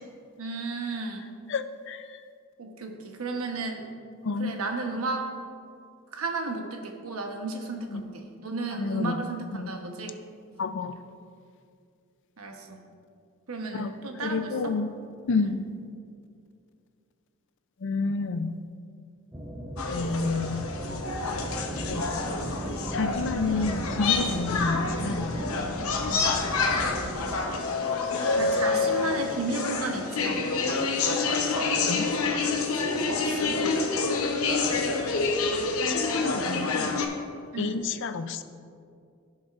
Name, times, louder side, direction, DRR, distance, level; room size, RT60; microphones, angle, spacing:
voice 1, 0.4-1.3 2.6-3.9 4.4-5.3 6.1-10.2 12.4-12.8 13.5-14.8 15.4-15.6 26.0-26.4 28.3-30.8 32.7-33.7 37.5-37.8, right 3 dB, 85° right, 3 dB, 1.0 m, -33 dB
voice 2, 1.5-2.0 4.2-4.5 7.9-8.0 8.7-9.2 9.5-9.7 10.6-11.0 13.7-13.9 14.2-14.9 15.3-15.7 17.8-18.5 19.8-20.6 21.9-22.2 22.9-25.3 25.9-26.1 31.2-31.6 31.9-32.1 35.0-35.1 35.9-37.0 37.6-38.4, left 4 dB, 60° left, 11 dB, 0.4 m, -30 dB
sound 1, 19.3-27.3, right 1 dB, 10° right, 0.6 m, -36 dB
sound 2, 19.8-37.1, left 4 dB, 85° left, 0.9 m, -28 dB
16.0 x 6.4 x 2.5 m, 2.3 s
head